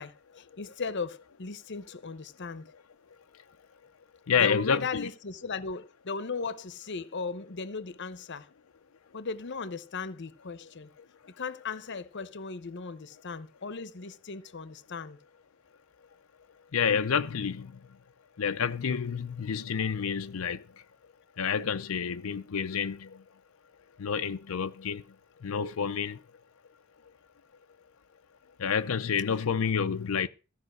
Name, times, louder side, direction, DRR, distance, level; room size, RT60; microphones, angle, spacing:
voice 1, 0.0-2.7 4.3-8.5 9.1-10.9 11.4-15.2, left 4 dB, 60° left, 0.8 m, -37 dB
voice 2, 4.3-5.1 16.7-17.7 18.4-20.6 21.4-23.1 24.0-25.0 25.4-26.2 28.6-30.3, left 6 dB, 85° left, 0.5 m, -29 dB
14.5 x 5.5 x 7.8 m
head